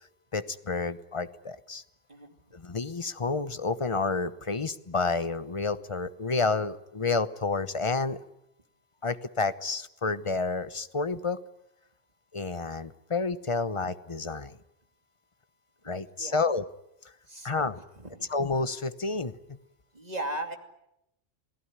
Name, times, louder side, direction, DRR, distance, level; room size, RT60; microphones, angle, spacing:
voice 1, 0.3-1.8 2.5-8.2 9.0-11.4 12.3-14.6 15.8-16.6 17.4-17.8 18.3-19.6, left 4 dB, 30° left, 13 dB, 1.0 m, -30 dB
voice 2, 17.3-17.7 17.9-18.3 19.9-20.6, right 1 dB, 35° right, 5 dB, 2.7 m, -37 dB
28.5 x 18.0 x 9.8 m, 0.84 s
omnidirectional pair, 1.2 m